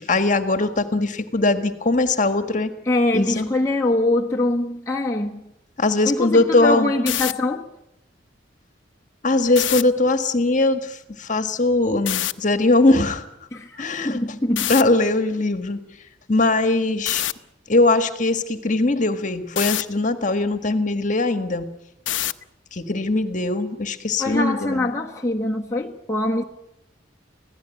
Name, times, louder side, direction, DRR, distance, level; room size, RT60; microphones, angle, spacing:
voice 1, 0.0-2.7 3.1-3.5 5.8-6.9 9.2-13.2 13.8-14.2 14.7-15.8 16.3-17.2 17.7-21.7 22.7-24.9, left 2 dB, 40° left, 1.6 m, -20 dB
voice 2, 2.9-5.4 6.1-7.7 13.5-14.7 24.2-26.4, left 2 dB, 15° left, 1.4 m, -23 dB
sound 1, 6.9-7.3 9.5-9.8 12.0-12.3 14.6-14.8 17.1-17.3 19.6-19.8 22.1-22.4, left 13 dB, 85° left, 0.8 m, -24 dB
25.5 x 16.5 x 9.1 m
head